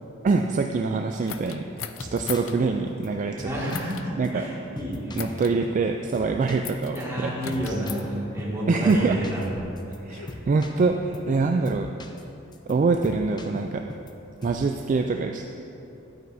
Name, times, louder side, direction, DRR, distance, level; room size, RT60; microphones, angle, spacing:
voice 1, 0.2-1.7 2.0-3.5 4.2-4.4 5.1-7.7 8.7-9.2 10.1-11.9 12.7-13.8 14.4-15.4, right 4 dB, 40° right, 4 dB, 0.3 m, -24 dB
sound 1, 1.3-2.6 3.7-4.1 5.1-5.5 6.6-7.0 7.4-8.0 8.9-10.4, left 9 dB, 75° left, 0.4 m, -39 dB
sound 2, 2.0-3.1 3.4-3.9 4.2-4.3 4.8-5.9 6.1-8.6 8.9-9.5 9.8-10.0 10.3-11.4 11.6-12.2 12.5-14.1 14.4-14.7, left 1 dB, 20° left, 0.5 m, -41 dB
voice 2, 3.4-5.4 6.9-9.7 10.2-10.4, equal, 15° right, -7 dB, 2.0 m, -30 dB
11.5 x 9.0 x 2.7 m, 2.8 s
head